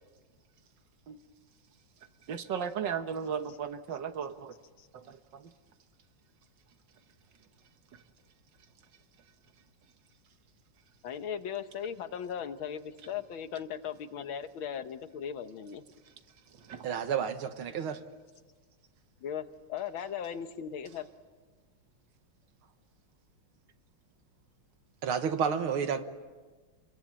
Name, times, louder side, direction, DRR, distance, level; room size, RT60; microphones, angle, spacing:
voice 1, 2.3-4.5 4.9-5.5 16.5-17.0, right 7 dB, 65° right, 9 dB, 1.7 m, -36 dB
voice 2, 11.0-15.8 19.2-21.1, left 8 dB, 75° left, 9 dB, 1.9 m, -38 dB
voice 3, 16.8-18.0 25.0-26.0, right 7 dB, 85° right, 9 dB, 2.2 m, -30 dB
27.5 x 22.0 x 8.8 m, 1.4 s
omnidirectional pair, 2.3 m